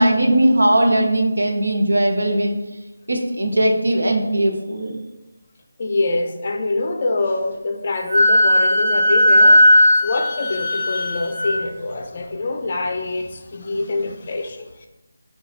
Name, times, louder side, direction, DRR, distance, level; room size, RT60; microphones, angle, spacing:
voice 1, 0.0-2.6 3.1-5.0, right 1 dB, 85° right, 0.8 m, -18 dB
voice 2, 5.8-9.7 10.0-14.9, left 2 dB, 40° left, 0.4 m, -25 dB
Wind instrument woodwind instrument, 8.1-11.6, left 1 dB, 35° right, 0.9 m, -15 dB
5.8 x 2.3 x 2.7 m
figure-of-eight pair, 165°, 0 cm